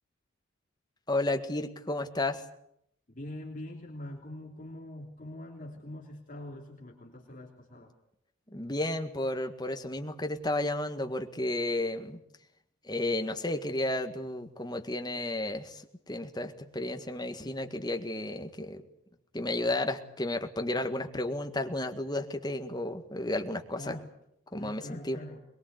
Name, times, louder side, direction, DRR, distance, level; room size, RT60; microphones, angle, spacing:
voice 1, 1.1-2.4 8.5-12.2 12.8-18.8 19.3-24.0 24.5-25.2, left 1 dB, 20° left, 5 dB, 1.8 m, -32 dB
voice 2, 3.1-7.9 23.8-24.1 24.5-25.4, left 1 dB, 40° left, 0 dB, 3.2 m, -43 dB
22.5 x 22.0 x 8.2 m, 0.76 s
head